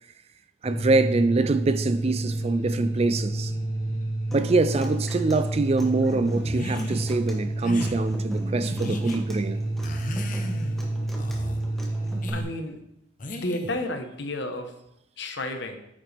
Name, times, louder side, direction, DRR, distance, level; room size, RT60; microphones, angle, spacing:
sound 1, 0.6-12.4, right 1 dB, 20° left, 2.6 m, -29 dB
voice 1, 0.6-3.5 4.3-9.6, right 3 dB, 35° right, 0.4 m, -24 dB
Human voice / Acoustic guitar, 4.3-12.3, equal, ahead, 1.3 m, -41 dB
sound 2, 6.4-7.1 7.6-8.0 8.6-9.2 9.8-10.8 11.2-11.6 12.2-12.5 13.2-13.8, left 1 dB, 45° left, 0.9 m, -35 dB
voice 2, 12.3-12.8 13.3-14.7 15.2-15.8, left 1 dB, 65° left, 1.1 m, -31 dB
9.1 x 7.5 x 3.4 m
head